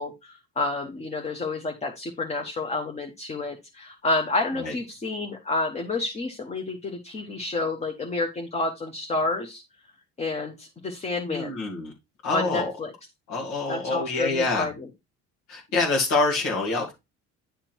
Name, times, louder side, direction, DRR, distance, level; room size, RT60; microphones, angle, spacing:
voice 1, 0.0-9.6 10.2-11.5 12.3-12.9 13.7-14.7, left 3 dB, 20° left, 1.0 m, -29 dB
voice 2, 11.3-11.9 12.2-12.7 13.3-14.7 15.5-16.9, left 3 dB, 80° left, 2.4 m, -26 dB
10.0 x 3.7 x 4.5 m
cardioid pair, 140°, 29 cm